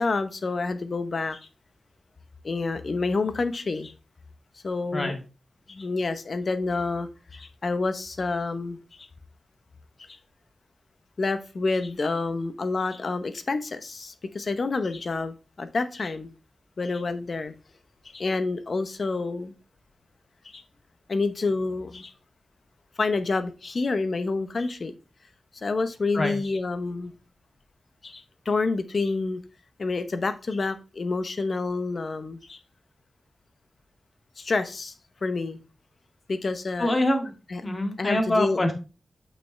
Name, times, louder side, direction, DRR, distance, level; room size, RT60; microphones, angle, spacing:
voice 1, 0.0-1.5 2.4-3.9 4.6-5.1 5.7-9.1 10.0-10.2 11.2-16.3 16.8-17.5 18.1-19.5 20.4-20.6 21.1-22.1 23.0-24.9 25.5-27.1 28.0-29.4 29.8-32.6 34.4-34.9 35.2-35.6 36.3-36.9 37.5-37.6 38.0-38.6, left 3 dB, 55° left, 11 dB, 0.9 m, -28 dB
voice 2, 36.8-37.3 37.6-38.7, left 1 dB, 35° left, 5 dB, 1.9 m, -25 dB
6.9 x 5.8 x 3.2 m, 0.32 s
wide cardioid pair, 75°, 0 cm